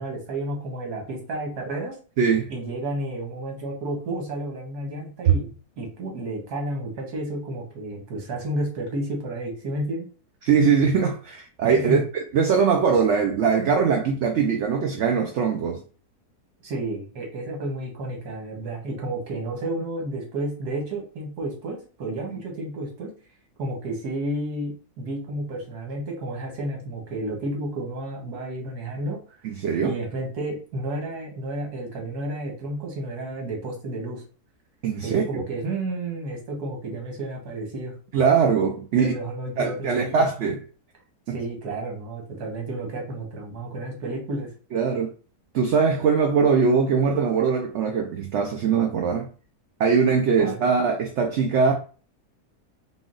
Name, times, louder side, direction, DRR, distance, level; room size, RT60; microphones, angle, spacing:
voice 1, 0.0-2.0 2.5-10.1 11.9-12.0 16.6-23.1 23.6-29.2 29.8-34.2 35.0-37.9 39.0-40.1 41.3-44.5 50.4-50.6, right 1 dB, 85° right, 1.8 m, -31 dB
voice 2, 2.2-2.5 5.3-5.4 10.4-15.8 29.4-30.0 34.8-35.4 38.1-39.1 39.6-40.6 41.3-41.4 44.7-45.1 45.5-49.3 49.8-51.7, right 6 dB, 65° right, 0.7 m, -21 dB
3.8 x 2.3 x 3.8 m
omnidirectional pair, 1.6 m